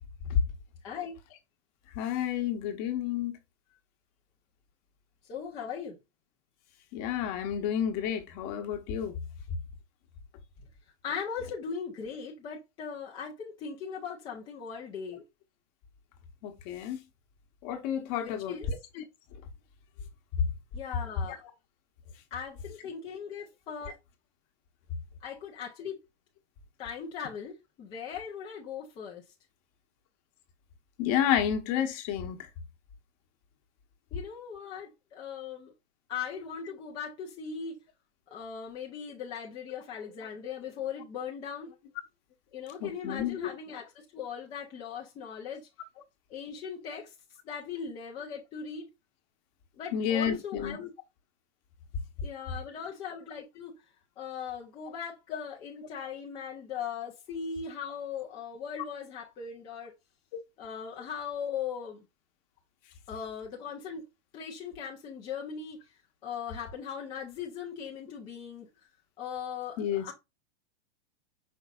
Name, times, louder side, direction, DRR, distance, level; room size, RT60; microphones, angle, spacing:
voice 1, 0.8-1.2 5.3-6.0 11.0-15.2 18.2-18.7 20.7-21.4 22.3-24.0 25.2-26.0 26.8-29.2 34.1-35.7 36.1-37.8 38.3-41.7 42.5-45.7 46.3-47.1 47.4-48.9 49.8-50.9 52.2-53.7 54.2-59.9 60.6-62.0 63.1-64.0 64.3-65.8 66.2-68.7 69.2-70.1, left 7 dB, 15° left, 0.4 m, -39 dB
voice 2, 2.0-3.4 6.9-9.2 16.4-17.0 17.6-19.0 31.0-32.4 42.8-43.5 49.9-50.8 69.8-70.1, left 9 dB, 35° left, 0.9 m, -30 dB
5.3 x 3.9 x 2.3 m
supercardioid pair, 155°, 33 cm